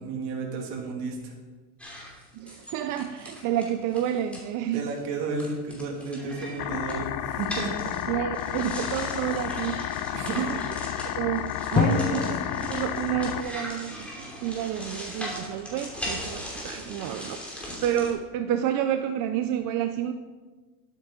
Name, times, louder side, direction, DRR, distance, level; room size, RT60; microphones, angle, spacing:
voice 1, 0.0-1.3 4.7-7.7 10.1-10.4, right 4 dB, 60° right, 0 dB, 2.7 m, -32 dB
sound 1, 1.8-4.4 4.8-5.0 5.3-18.1, equal, 5° left, 3.1 m, -39 dB
voice 2, 2.3-4.9 8.1-10.0 10.3-10.6 11.1-20.1, right 10 dB, 45° right, 8 dB, 0.6 m, -29 dB
sound 2, 6.6-13.4, left 12 dB, 75° left, 0.8 m, -32 dB
Drum, 11.7-14.5, left 5 dB, 20° left, 0.7 m, -28 dB
11.5 x 8.6 x 3.9 m, 1.3 s
supercardioid pair, 125°, 46 cm